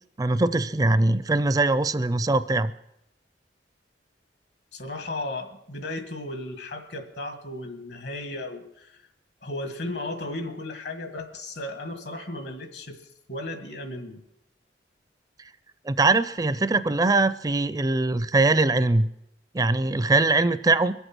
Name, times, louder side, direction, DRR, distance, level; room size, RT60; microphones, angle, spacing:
voice 1, 0.2-2.7 15.9-19.1 19.5-20.9, right 2 dB, 20° right, 14 dB, 0.4 m, -22 dB
voice 2, 4.7-9.0 9.4-13.0 13.3-14.2, left 2 dB, 70° left, 6 dB, 1.8 m, -35 dB
23.0 x 8.1 x 6.1 m, 0.83 s
head